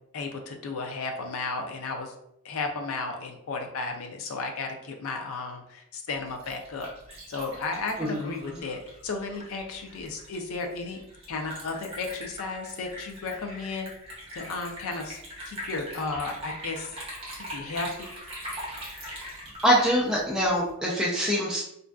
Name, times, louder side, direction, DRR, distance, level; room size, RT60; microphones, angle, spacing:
voice 1, 0.1-2.1 2.4-6.9 7.3-11.0 11.3-13.9 14.3-15.2 15.5-16.9 17.5-18.1, left 3 dB, 80° left, 3 dB, 0.4 m, -34 dB
Liquid, 6.1-20.7, equal, 25° right, 0.7 m, -41 dB
voice 2, 8.0-8.6 19.6-21.6, equal, 5° right, -6 dB, 0.3 m, -24 dB
2.5 x 2.2 x 2.3 m, 0.77 s
head